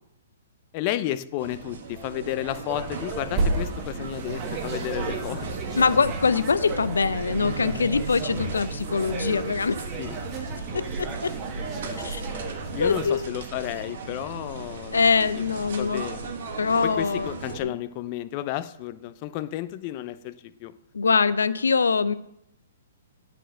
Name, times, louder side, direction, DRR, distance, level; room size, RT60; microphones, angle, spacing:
voice 1, 0.7-5.5 10.0-10.2 12.7-15.0 15.8-16.3 16.8-20.7, left 14 dB, 40° left, 13 dB, 0.5 m, -32 dB
sound 1, 1.4-17.6, right 3 dB, 65° right, 1.5 m, -36 dB
sound 2, 2.7-13.1, right 3 dB, 30° right, 1.3 m, -33 dB
voice 2, 5.8-9.8 10.7-11.3 12.0-12.2 12.8-13.2 14.9-16.0 16.6-17.3 17.6-17.7 20.9-22.1, left 5 dB, 90° left, 15 dB, 0.5 m, -23 dB
9.1 x 4.4 x 6.3 m, 0.80 s
hypercardioid pair, 135°, 0 cm